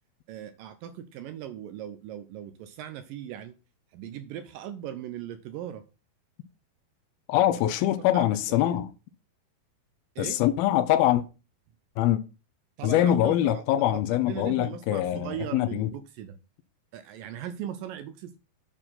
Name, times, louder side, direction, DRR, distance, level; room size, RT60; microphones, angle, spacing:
voice 1, 0.3-3.6 3.9-5.8 8.0-8.3 8.6-8.8 10.2-10.4 12.8-16.3 16.9-18.4, right 10 dB, 80° right, 2.1 m, -39 dB
voice 2, 7.3-8.9 10.2-11.2 12.0-12.2 12.8-15.9, left 13 dB, 80° left, 2.4 m, -24 dB
9.0 x 4.5 x 5.7 m
omnidirectional pair, 4.5 m